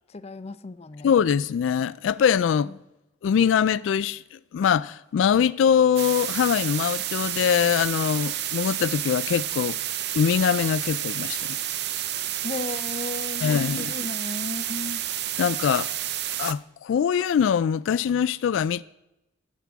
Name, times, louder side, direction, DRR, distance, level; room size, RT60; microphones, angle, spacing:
voice 1, 0.1-1.1 2.6-2.8 12.4-13.5 13.8-15.0, left 2 dB, 35° left, 0.5 m, -35 dB
voice 2, 1.0-2.7 3.2-9.8 10.1-11.6 13.4-13.9 15.4-15.9 16.4-18.8, left 7 dB, 90° left, 0.3 m, -23 dB
sound 1, 6.0-16.5, right 12 dB, 60° right, 0.6 m, -30 dB
20.5 x 7.4 x 3.5 m
head